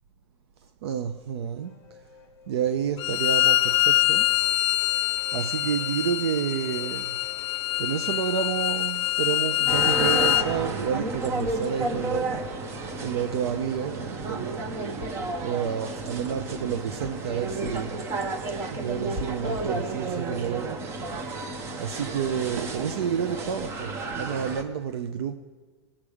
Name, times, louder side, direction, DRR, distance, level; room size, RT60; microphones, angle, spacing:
voice 1, 0.8-1.7 2.5-4.3 5.3-7.2 7.8-12.4 13.0-14.8 15.4-18.0 18.7-20.8 21.1-21.4 21.8-25.3, right 8 dB, 65° right, 0.6 m, -30 dB
sound 1, 1.2-13.8, left 6 dB, 15° left, 1.2 m, -52 dB
Bowed string instrument, 3.0-10.5, left 16 dB, 75° left, 0.4 m, -24 dB
sound 2, 9.7-24.6, right 2 dB, 15° right, 0.6 m, -32 dB
18.0 x 7.3 x 4.9 m
supercardioid pair, 170°, 14 cm